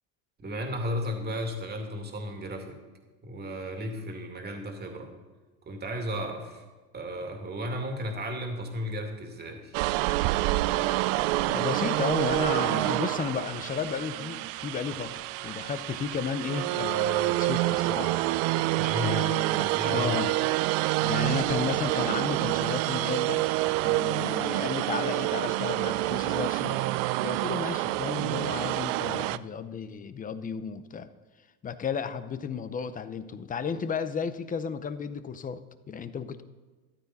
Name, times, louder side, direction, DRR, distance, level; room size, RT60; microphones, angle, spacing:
voice 1, 0.4-2.8 3.2-5.1 5.7-6.6 6.9-9.8 18.7-19.2 19.6-20.2, equal, 20° right, 3 dB, 2.3 m, -34 dB
sound 1, 9.7-29.4, right 18 dB, 65° right, 0.5 m, -27 dB
voice 2, 11.4-18.2 19.0-20.5 21.0-23.5 23.8-26.8 27.2-31.1 31.6-36.4, left 6 dB, 20° left, 12 dB, 0.6 m, -33 dB
14.0 x 12.0 x 4.1 m, 1.3 s
supercardioid pair, 120°, 43 cm